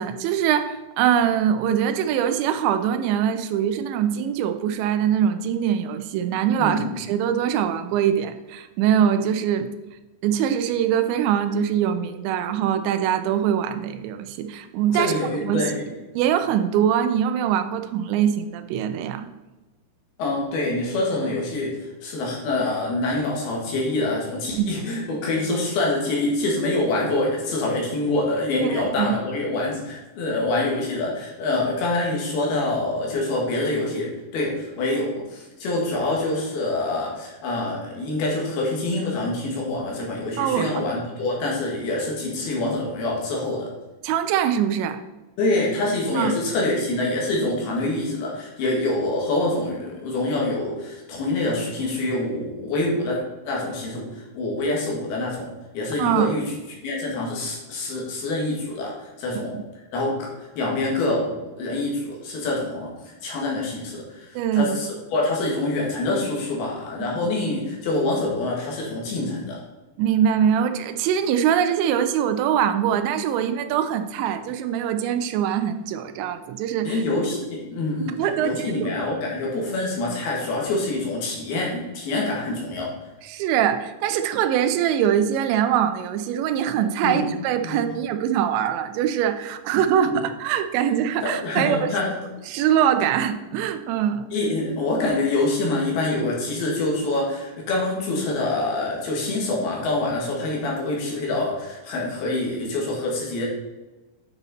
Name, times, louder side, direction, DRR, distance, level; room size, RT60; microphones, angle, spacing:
voice 1, 0.0-9.7 10.2-15.2 15.4-15.6 16.1-19.3 24.5-24.7 28.6-29.1 40.4-40.7 44.0-45.0 46.2-46.3 56.0-56.4 59.5-59.6 64.4-64.8 67.0-67.1 70.0-77.0 78.2-78.9 83.3-91.9 92.5-94.3, right 9 dB, 90° right, 9 dB, 3.0 m, -23 dB
voice 2, 6.6-6.9 14.9-15.8 20.2-43.7 45.4-53.2 53.4-55.5 55.7-56.4 56.8-59.5 59.9-60.3 60.6-69.6 76.8-82.9 87.0-87.3 87.6-87.8 90.1-90.2 91.2-92.1 94.3-103.5, left 2 dB, 65° left, -2 dB, 3.4 m, -26 dB
9.5 x 5.6 x 4.1 m, 1.1 s
omnidirectional pair, 5.1 m